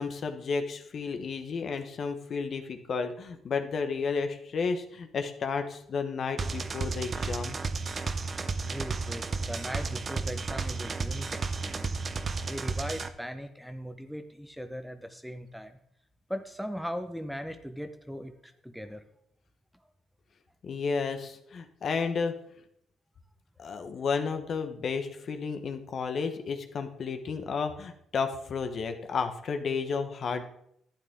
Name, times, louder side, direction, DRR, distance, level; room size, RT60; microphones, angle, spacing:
voice 1, 0.0-7.6 20.6-22.3 23.6-30.4, left 5 dB, 55° left, 7 dB, 1.2 m, -32 dB
sound 1, 6.4-13.1, right 4 dB, 40° right, 0.8 m, -33 dB
voice 2, 8.7-11.9 12.5-15.8 16.3-19.0 23.6-23.9, equal, ahead, 8 dB, 0.9 m, -39 dB
11.5 x 9.0 x 3.7 m, 0.72 s
cardioid pair, 90°, 0 cm